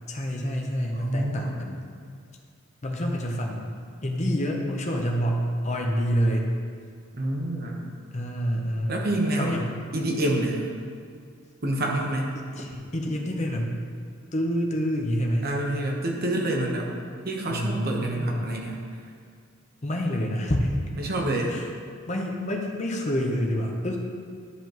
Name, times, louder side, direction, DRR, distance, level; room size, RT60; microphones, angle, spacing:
voice 1, 0.1-1.8 2.8-3.7 4.0-6.5 8.1-9.1 9.4-9.7 12.3-13.7 14.3-15.6 17.5-18.5 19.8-20.8 21.5-21.7 22.1-24.0, equal, 35° left, 1 dB, 0.8 m, -27 dB
voice 2, 0.9-1.6 7.1-7.8 8.9-9.6 9.9-10.7 11.6-12.4 15.4-16.9 17.2-18.8 21.0-21.5, right 1 dB, 50° right, 0 dB, 1.1 m, -27 dB
11.5 x 5.1 x 3.0 m, 2.2 s
head